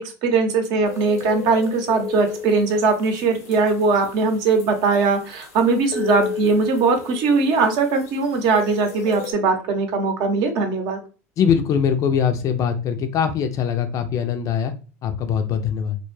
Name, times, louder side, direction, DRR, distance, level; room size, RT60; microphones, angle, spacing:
voice 1, 0.0-11.0, right 4 dB, 60° right, 5 dB, 0.7 m, -20 dB
sound 1, 0.8-9.3, left 5 dB, 80° left, 0.9 m, -34 dB
voice 2, 11.4-14.7 15.0-16.0, left 7 dB, 45° left, 7 dB, 0.4 m, -22 dB
2.2 x 2.1 x 3.1 m, 0.35 s
hypercardioid pair, 95°, 8 cm